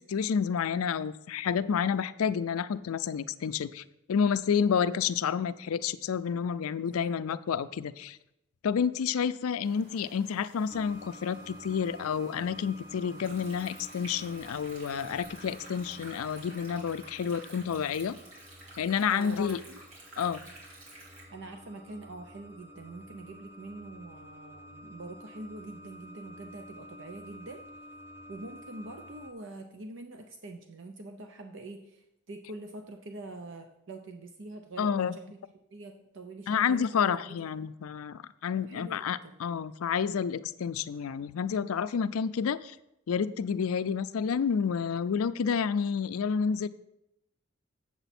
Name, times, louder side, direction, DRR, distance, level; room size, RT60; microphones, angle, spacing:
voice 1, 0.1-8.2 8.6-18.2 18.8-19.6 20.2-20.4 34.8-35.2 36.5-42.8 43.1-46.7, left 7 dB, 85° left, 14 dB, 0.4 m, -29 dB
voice 2, 6.8-7.2 19.1-19.8 21.3-27.6 28.3-35.4 35.7-37.4 38.5-39.3, right 2 dB, 60° right, 5 dB, 0.6 m, -44 dB
sound 1, 9.6-16.7, right 1 dB, 45° right, 1.7 m, -57 dB
sound 2, 10.7-29.3, equal, 10° right, 0.5 m, -50 dB
Stream, 13.2-21.2, right 2 dB, 80° right, 3.1 m, -50 dB
7.9 x 7.5 x 4.2 m, 0.85 s
head